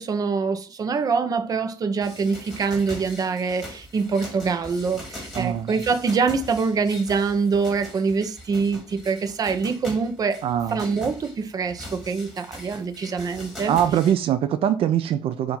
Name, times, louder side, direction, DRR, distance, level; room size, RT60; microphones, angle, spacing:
voice 1, 0.0-10.4 10.7-13.8, right 5 dB, 40° right, 0.7 m, -24 dB
sound 1, 2.0-14.1, left 1 dB, 5° left, 2.3 m, -41 dB
voice 2, 5.4-5.7 10.4-10.8 13.7-15.6, right 10 dB, 75° right, 0.5 m, -22 dB
7.0 x 2.6 x 5.7 m
cardioid pair, 145°, 10 cm